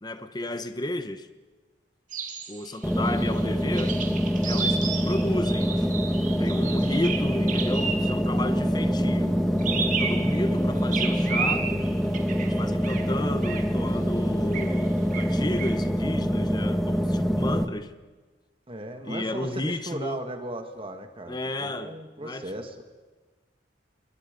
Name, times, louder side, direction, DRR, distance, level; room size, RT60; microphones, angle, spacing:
voice 1, 0.0-1.3 2.5-4.0 4.4-5.9 6.4-9.4 9.9-11.7 12.4-17.9 19.0-20.3 21.3-22.5, left 1 dB, 25° left, 1.0 m, -33 dB
sound 1, 2.1-8.3 9.6-10.5 10.9-13.1 13.4-13.7 14.5-14.8 15.1-15.8, right 6 dB, 45° right, 2.7 m, -33 dB
sound 2, 2.8-17.6, equal, ahead, 1.4 m, -25 dB
voice 2, 18.7-22.8, right 1 dB, 30° right, 1.9 m, -37 dB
30.0 x 22.0 x 5.3 m
head